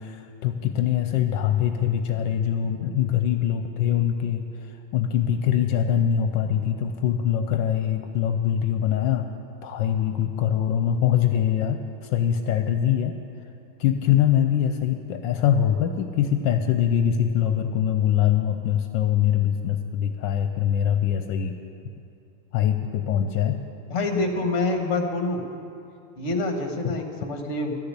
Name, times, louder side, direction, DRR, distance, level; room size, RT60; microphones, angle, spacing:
voice 1, 0.0-4.5 4.9-9.3 9.6-13.2 13.8-21.5 22.5-23.6, left 10 dB, 80° left, 6 dB, 1.3 m, -23 dB
voice 2, 23.9-25.4 26.2-27.7, left 2 dB, 45° left, 4 dB, 1.4 m, -26 dB
13.0 x 6.8 x 9.5 m, 2.6 s
omnidirectional pair, 2.1 m